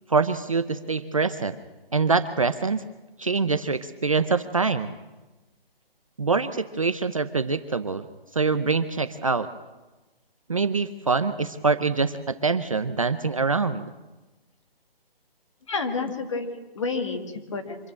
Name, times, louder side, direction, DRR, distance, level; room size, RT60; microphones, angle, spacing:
voice 1, 0.1-1.6 1.9-2.8 3.2-4.9 6.2-8.0 8.3-9.5 10.5-13.9, right 4 dB, 35° right, 10 dB, 0.6 m, -24 dB
voice 2, 15.7-17.8, left 4 dB, 30° left, 5 dB, 2.0 m, -30 dB
25.5 x 13.0 x 8.7 m, 1.2 s
hypercardioid pair, 175°, 30 cm